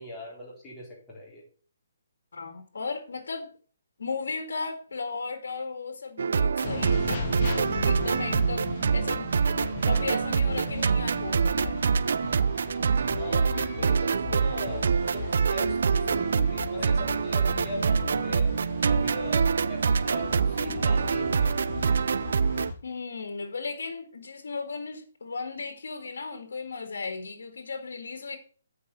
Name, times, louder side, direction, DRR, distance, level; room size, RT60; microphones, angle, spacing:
voice 1, 0.0-1.4 13.2-18.5 18.8-21.6, left 1 dB, 15° left, 4.2 m, -39 dB
voice 2, 2.3-3.5 4.0-8.7 8.9-9.3 9.8-11.8 22.8-28.4, left 4 dB, 80° left, 2.0 m, -36 dB
sound 1, 6.2-22.7, right 6 dB, 70° right, 0.3 m, -25 dB
sound 2, 6.6-22.7, left 3 dB, 35° left, 2.5 m, -36 dB
8.6 x 5.4 x 5.7 m
hypercardioid pair, 160°, 0 cm